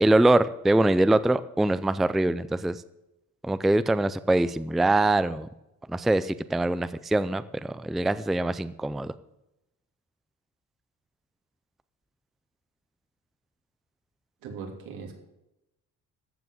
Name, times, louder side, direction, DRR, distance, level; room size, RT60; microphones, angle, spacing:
voice 1, 0.0-2.8 3.4-5.5 5.9-9.1, right 2 dB, ahead, 14 dB, 0.4 m, -23 dB
voice 2, 14.4-15.1, right 5 dB, 85° right, 1 dB, 3.1 m, -39 dB
14.0 x 6.0 x 7.7 m, 0.90 s
cardioid pair, 105°, 34 cm